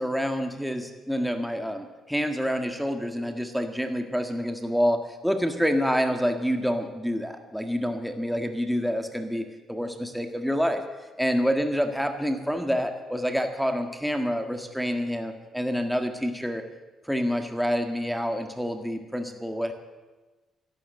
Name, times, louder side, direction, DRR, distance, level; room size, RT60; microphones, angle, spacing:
voice 1, 0.0-10.8 11.2-16.6 17.0-19.7, equal, ahead, 5 dB, 1.7 m, -27 dB
13.0 x 12.0 x 8.0 m, 1.2 s
cardioid pair, 90°, 0 cm